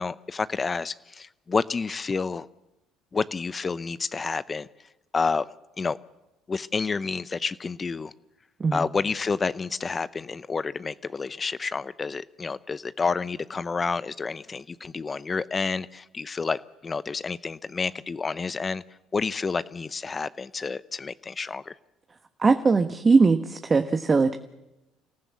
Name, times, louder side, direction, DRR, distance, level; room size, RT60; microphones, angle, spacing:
voice 1, 0.0-2.5 3.1-4.7 5.1-5.4 5.8-6.0 6.5-8.1 8.7-18.8 19.1-21.7, left 4 dB, 30° left, 16 dB, 0.7 m, -29 dB
voice 2, 22.4-24.4, right 4 dB, 30° right, 8 dB, 1.3 m, -20 dB
28.0 x 15.0 x 8.3 m, 0.98 s
hypercardioid pair, 65°, 0 cm